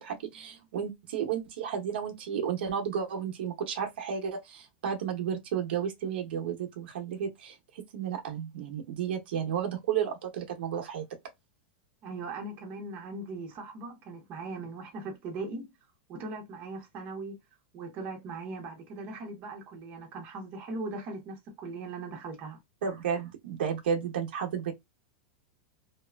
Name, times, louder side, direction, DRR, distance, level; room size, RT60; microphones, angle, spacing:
voice 1, 0.0-11.0 22.8-24.7, right 8 dB, 75° right, 0.8 m, -32 dB
voice 2, 12.0-15.7 16.1-17.4 17.7-22.6, right 3 dB, 35° right, 0.9 m, -39 dB
2.8 x 2.3 x 2.2 m
supercardioid pair, 150°, 6 cm